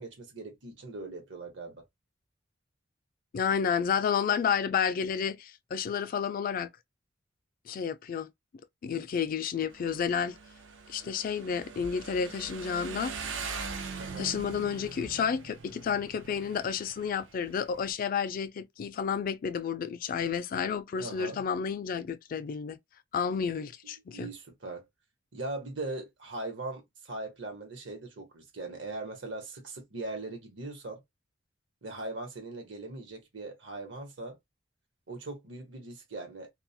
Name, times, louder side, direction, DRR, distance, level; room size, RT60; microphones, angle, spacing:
voice 1, 0.0-1.8 14.0-14.3 21.0-21.4 24.1-24.9 25.3-31.0 31.8-34.4 35.1-36.5, right 2 dB, 75° right, 1.0 m, -40 dB
voice 2, 3.3-6.7 7.7-8.3 8.8-10.4 10.9-13.1 14.2-22.8 23.1-24.3, left 7 dB, 50° left, 0.3 m, -31 dB
Motorcycle, 9.7-17.9, right 5 dB, 90° right, 0.5 m, -42 dB
2.3 x 2.0 x 2.7 m
head